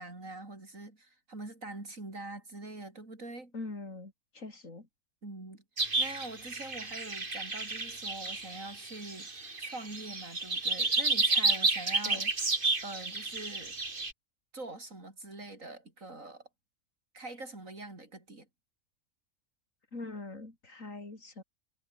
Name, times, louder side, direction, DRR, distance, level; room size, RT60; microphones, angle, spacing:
voice 1, 0.0-3.5 5.2-5.6 6.0-12.3 12.8-13.8 14.5-16.5 17.1-18.5, right 2 dB, 75° right, 5.6 m, -44 dB
voice 2, 3.5-4.9 12.1-12.3 19.9-21.4, left 3 dB, 70° left, 4.6 m, -43 dB
sound 1, 5.8-14.1, right 3 dB, 40° right, 2.6 m, -31 dB
omnidirectional pair, 1.4 m